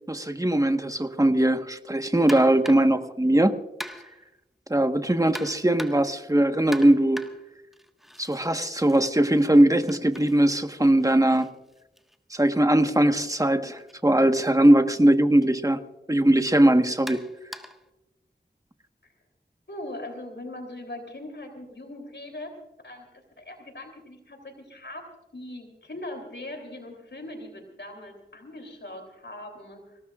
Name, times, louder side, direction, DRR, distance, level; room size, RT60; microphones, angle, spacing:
voice 1, 0.1-3.5 4.7-7.2 8.2-11.5 12.3-15.8 16.1-17.2, right 1 dB, 20° right, 7 dB, 1.3 m, -20 dB
sound 1, 2.3-3.0 3.8-4.3 5.3-6.2 6.7-8.5 8.8-12.7 13.8-13.9 14.4-14.5 15.4-15.6 17.1-17.9, equal, ahead, 1.5 m, -42 dB
voice 2, 19.7-22.5 22.8-23.1 23.4-25.1 25.3-30.0, left 1 dB, 70° left, 4 dB, 3.2 m, -40 dB
25.5 x 18.0 x 2.4 m, 0.96 s
wide cardioid pair, 45°, 19 cm